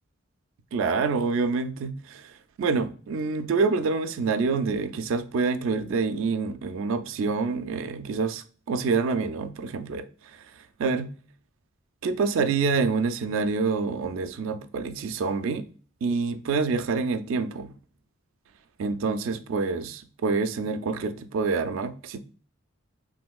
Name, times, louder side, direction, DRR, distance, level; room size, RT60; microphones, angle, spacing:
voice 1, 0.7-2.3 2.6-10.1 10.3-10.4 10.8-11.1 12.0-15.7 16.0-17.8 18.8-22.2, right 4 dB, 70° right, 0.3 m, -27 dB
3.6 x 2.6 x 2.2 m
head